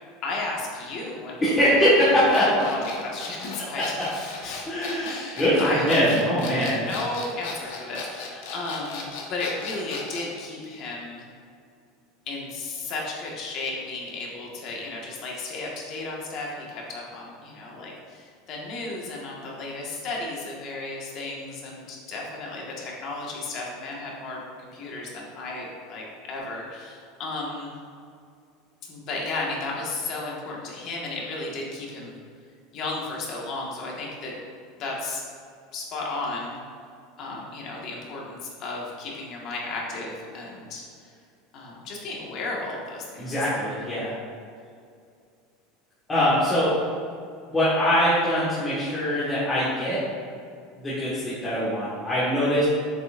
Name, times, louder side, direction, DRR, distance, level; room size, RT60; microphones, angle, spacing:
voice 1, 0.2-1.9 2.6-3.8 4.1-4.7 5.0-6.0 6.6-11.2 12.3-27.8 28.9-32.1 32.7-34.3 34.8-35.2 35.7-36.6 37.2-41.1 41.5-43.2, left 2 dB, 40° left, -2 dB, 1.6 m, -34 dB
voice 2, 1.4-2.5 4.0-4.1 4.7-6.8 43.2-44.1 46.1-46.7 47.5-50.0 50.8-52.6, equal, 15° left, -11 dB, 1.6 m, -22 dB
sound 1, 2.3-10.3, left 4 dB, 80° left, 1.2 m, -37 dB
7.9 x 7.0 x 2.6 m, 2.3 s
supercardioid pair, 160°, 0 cm